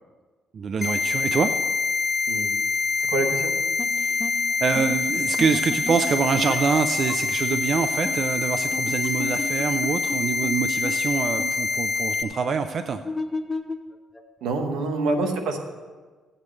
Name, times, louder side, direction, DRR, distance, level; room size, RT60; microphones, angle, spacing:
voice 1, 0.5-1.5 4.0-4.3 4.6-13.0, right 5 dB, 55° right, 9 dB, 0.5 m, -25 dB
sound 1, 0.8-12.2, left 4 dB, 40° left, 0.7 m, -25 dB
voice 2, 3.0-3.5 14.4-15.6, right 2 dB, 90° right, 4 dB, 1.4 m, -26 dB
sound 2, 3.8-3.9 4.2-4.3 4.7-4.9 5.4-6.8 7.1-7.2 7.5-7.6 8.0-8.2 8.7-10.2 10.4-10.5 10.8-11.0 11.4-11.5 13.0-14.5, left 2 dB, 20° left, 0.9 m, -32 dB
16.0 x 8.8 x 3.2 m, 1.4 s
cardioid pair, 90°, 0 cm